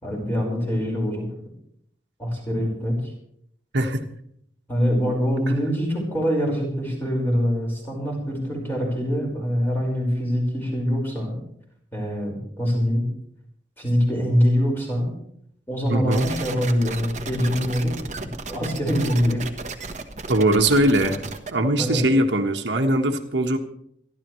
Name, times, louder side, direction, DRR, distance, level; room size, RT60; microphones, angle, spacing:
voice 1, 0.0-1.2 2.2-3.1 4.7-11.4 11.9-13.1 13.8-15.1 15.7-17.9 18.2-19.4 21.8-22.1, equal, 10° left, -2 dB, 4.9 m, -24 dB
voice 2, 15.9-16.3 20.3-21.2 21.5-23.6, right 1 dB, 85° right, 4 dB, 1.4 m, -20 dB
sound 1, 16.1-21.5, right 3 dB, 40° right, 1.1 m, -34 dB
27.0 x 11.5 x 3.2 m, 0.69 s
head